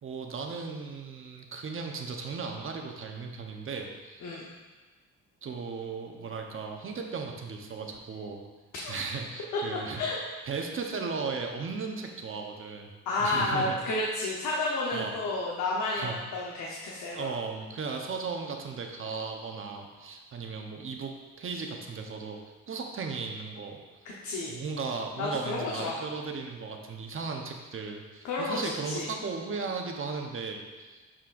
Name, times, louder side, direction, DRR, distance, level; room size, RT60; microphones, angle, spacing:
voice 1, 0.0-4.3 5.4-8.5 8.9-10.2 10.5-12.9 13.2-13.8 14.9-15.2 15.9-16.2 17.0-22.4 22.7-24.1 24.5-31.0, right 4 dB, 45° right, 2 dB, 0.9 m, -36 dB
voice 2, 13.1-17.3 24.0-24.5 25.2-25.9 28.2-29.1, left 2 dB, 80° left, -4 dB, 1.0 m, -31 dB
11.0 x 4.4 x 2.5 m, 1.3 s
cardioid pair, 90°, 30 cm